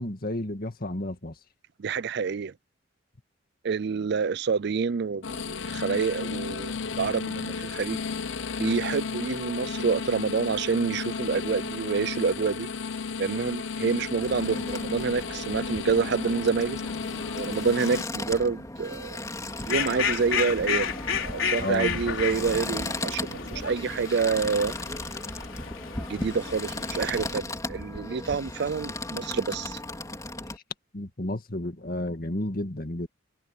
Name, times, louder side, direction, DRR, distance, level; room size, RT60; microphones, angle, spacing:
voice 1, 0.0-1.3 21.6-22.0 30.9-33.1, left 1 dB, 50° left, 2.1 m, -31 dB
voice 2, 1.8-2.5 3.6-8.0 8.6-12.7 13.2-16.8 17.3-19.2 19.7-24.7 26.1-29.8, right 5 dB, 55° right, 0.4 m, -27 dB
sound 1, 5.2-18.0, left 5 dB, 70° left, 0.8 m, -33 dB
sound 2, 14.2-30.6, left 2 dB, 15° left, 3.6 m, -36 dB
Fowl, 19.5-27.3, left 7 dB, 90° left, 4.1 m, -32 dB
head